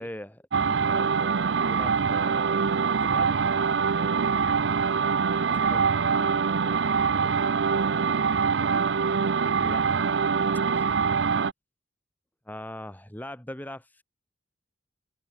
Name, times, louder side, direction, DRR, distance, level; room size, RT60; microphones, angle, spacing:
voice 1, 0.0-3.4 5.7-6.3 9.6-10.2 10.7-10.8 12.5-14.0, left 1 dB, 10° left, 2.5 m, -41 dB
sound 1, 0.5-11.5, right 5 dB, 65° right, 0.5 m, -24 dB
voice 2, 5.4-8.9, right 2 dB, 40° right, 5.1 m, -47 dB
head